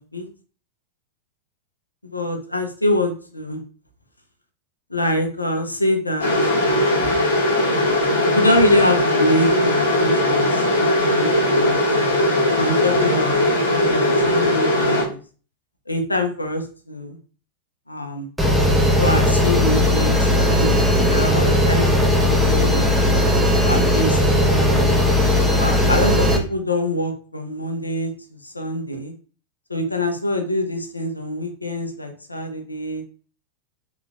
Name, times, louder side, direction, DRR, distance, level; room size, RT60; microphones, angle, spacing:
voice 1, 2.0-3.6 4.9-6.3 7.0-7.2 8.3-10.6 11.0-11.8 12.6-15.2 15.9-17.2 17.9-18.3 19.0-22.9 23.6-25.0 25.5-28.1 28.4-29.1 29.7-33.0, left 1 dB, 85° left, 5 dB, 0.6 m, -25 dB
sound 1, 6.2-15.0, left 1 dB, 70° left, 1.1 m, -19 dB
sound 2, 18.4-26.4, left 1 dB, ahead, 0.6 m, -17 dB
3.8 x 2.9 x 2.3 m, 0.40 s
figure-of-eight pair, 90°, 0 cm